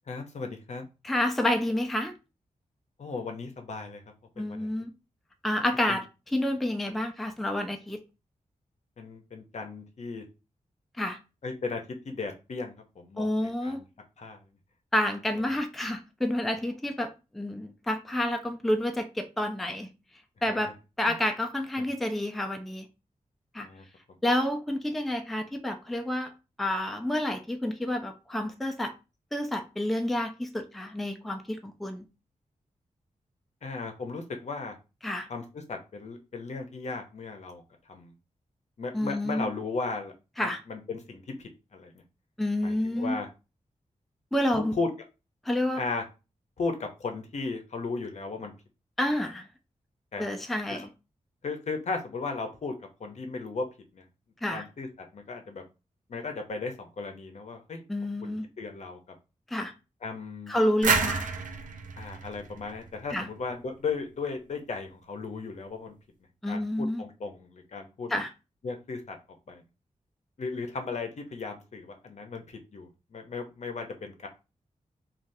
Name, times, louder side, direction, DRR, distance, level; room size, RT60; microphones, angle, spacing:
voice 1, 0.1-0.9 3.0-4.0 4.4-4.7 5.9-6.0 9.0-10.2 11.4-13.8 14.2-14.4 20.5-20.6 21.0-21.2 21.8-21.9 23.6-23.9 33.6-34.8 35.3-37.6 37.9-38.1 38.8-40.1 40.4-41.9 42.6-43.3 44.5-44.9 45.8-46.0 46.6-48.5 50.1-50.2 50.7-50.8 51.4-52.7 53.0-53.7 53.9-54.0 54.5-55.6 56.1-57.8 58.2-59.0 60.0-60.5 62.0-65.9 66.5-68.1 68.6-69.2 69.5-69.6 70.4-74.3, left 4 dB, 60° left, 0.7 m, -36 dB
voice 2, 1.0-2.1 4.4-4.9 5.4-6.0 6.3-8.0 11.0-11.2 13.2-13.8 14.9-19.9 20.4-20.7 21.0-22.9 23.5-23.7 24.2-26.3 26.6-28.9 29.3-32.1 35.0-35.3 38.9-39.5 40.4-40.6 42.4-43.2 44.3-44.7 45.5-45.8 49.0-49.5 50.2-50.9 54.4-54.6 57.9-58.5 59.5-59.7 60.5-61.3 63.1-63.3 66.4-67.0 68.1-68.3, left 1 dB, ahead, 0.4 m, -29 dB
sound 1, 60.8-63.5, right 4 dB, 75° right, 0.6 m, -30 dB
3.3 x 2.4 x 2.6 m
wide cardioid pair, 90°, 13 cm